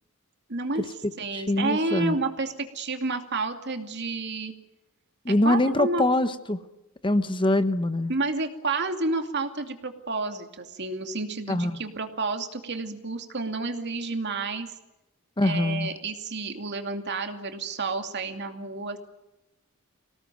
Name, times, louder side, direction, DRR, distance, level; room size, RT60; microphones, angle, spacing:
voice 1, 0.5-0.9 1.2-4.5 5.3-6.0 8.1-14.7 15.4-19.0, right 3 dB, 50° right, 6 dB, 2.6 m, -30 dB
voice 2, 1.3-2.2 5.2-6.6 7.0-8.1 11.5-11.8 15.4-15.9, left 1 dB, 25° left, 11 dB, 1.0 m, -24 dB
24.5 x 18.5 x 9.2 m, 0.97 s
head